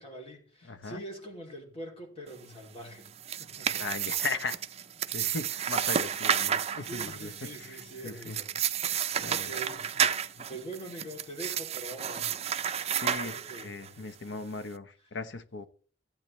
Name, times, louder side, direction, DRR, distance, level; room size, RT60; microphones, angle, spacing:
voice 1, 0.0-3.9 6.5-8.5 8.8-12.4 13.2-14.5, right 1 dB, 35° left, 2.7 m, -44 dB
voice 2, 0.6-1.0 3.8-4.6 5.1-8.4 9.2-9.5 10.4-10.5 13.0-15.7, left 4 dB, 90° left, 0.8 m, -38 dB
sound 1, 3.0-13.9, right 8 dB, 35° right, 0.5 m, -31 dB
15.0 x 8.9 x 3.1 m
head